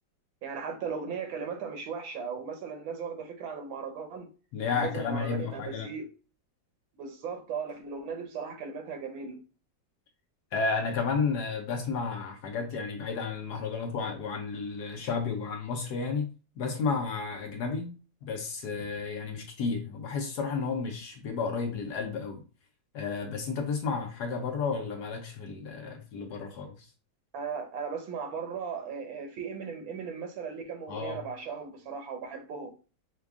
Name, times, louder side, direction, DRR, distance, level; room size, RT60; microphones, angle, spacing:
voice 1, 0.4-4.3 4.7-6.1 7.0-9.4 27.3-32.7, right 6 dB, 80° right, 1.7 m, -37 dB
voice 2, 4.5-5.9 10.5-17.9 18.2-22.4 22.9-26.9 30.9-31.2, left 5 dB, 65° left, 1.1 m, -32 dB
5.2 x 2.3 x 3.5 m
omnidirectional pair, 2.1 m